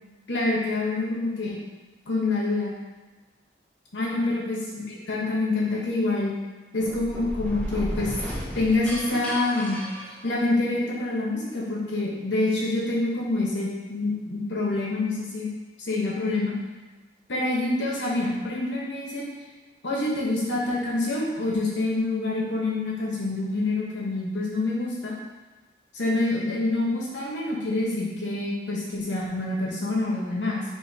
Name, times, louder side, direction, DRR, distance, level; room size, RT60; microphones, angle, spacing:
voice 1, 0.3-1.6 2.1-2.7 3.9-6.3 6.7-8.1 8.5-9.8 10.2-15.5 15.8-16.6 17.3-19.3 19.8-25.1 25.9-30.6, left 2 dB, 85° left, -4 dB, 1.0 m, -26 dB
sound 1, 6.8-10.8, equal, 5° left, 0.5 m, -34 dB
4.1 x 2.8 x 4.0 m, 1.2 s
head